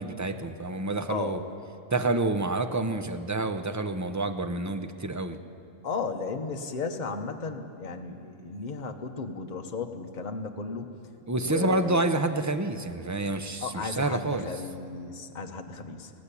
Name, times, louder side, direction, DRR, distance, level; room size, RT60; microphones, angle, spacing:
voice 1, 0.0-1.4 1.9-5.4 11.3-14.5, right 2 dB, 20° right, 8 dB, 0.6 m, -28 dB
voice 2, 1.1-1.6 5.2-5.4 5.8-11.0 11.4-12.1 13.6-16.1, left 4 dB, 35° left, 4 dB, 1.2 m, -35 dB
18.5 x 17.5 x 8.5 m, 2.5 s
omnidirectional pair, 1.4 m